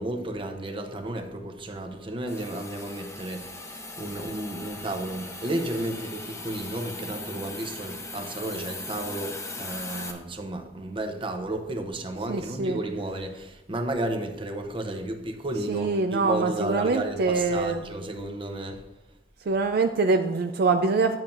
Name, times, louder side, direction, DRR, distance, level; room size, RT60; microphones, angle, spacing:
voice 1, 0.0-18.8, right 1 dB, 30° right, 5 dB, 0.8 m, -32 dB
Hiss, 2.3-10.1, left 2 dB, 15° left, 0.8 m, -39 dB
voice 2, 12.3-12.8 15.7-17.8 19.5-21.2, right 3 dB, 60° right, 7 dB, 0.4 m, -24 dB
10.5 x 7.2 x 2.6 m, 1.0 s
head